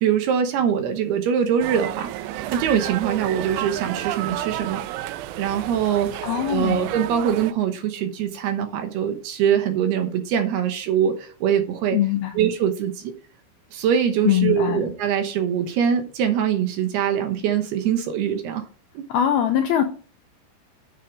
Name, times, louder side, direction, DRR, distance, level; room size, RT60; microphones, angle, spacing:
voice 1, 0.0-2.1 2.5-4.8 5.4-12.0 12.4-13.1 13.7-18.6 18.9-19.0, right 8 dB, 70° right, 6 dB, 2.7 m, -23 dB
sound 1, 1.6-7.5, right 14 dB, 90° right, 3.2 m, -31 dB
voice 2, 6.2-6.9 11.9-12.4 14.2-14.8 19.1-19.8, left 10 dB, 75° left, 5 dB, 2.3 m, -21 dB
9.6 x 6.5 x 5.1 m, 0.39 s
omnidirectional pair, 5.3 m